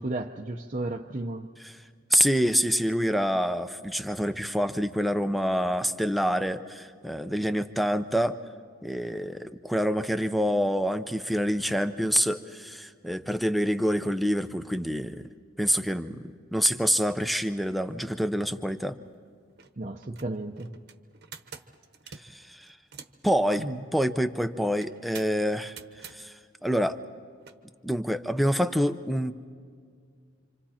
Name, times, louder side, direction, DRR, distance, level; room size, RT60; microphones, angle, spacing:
voice 1, 0.0-1.5 19.8-20.7 23.6-23.8, right 2 dB, 35° right, 0 dB, 0.8 m, -33 dB
voice 2, 2.1-8.4 8.8-15.3 15.6-19.0 22.2-22.7 23.2-23.6 23.9-26.3 26.6-27.0 27.8-29.3, equal, ahead, 10 dB, 0.6 m, -27 dB
sound 1, 19.0-19.1 19.5-19.7 20.0-23.3 24.8-26.2 27.4-27.6, right 6 dB, 50° right, 1.1 m, -46 dB
27.5 x 27.0 x 4.3 m, 2.2 s
head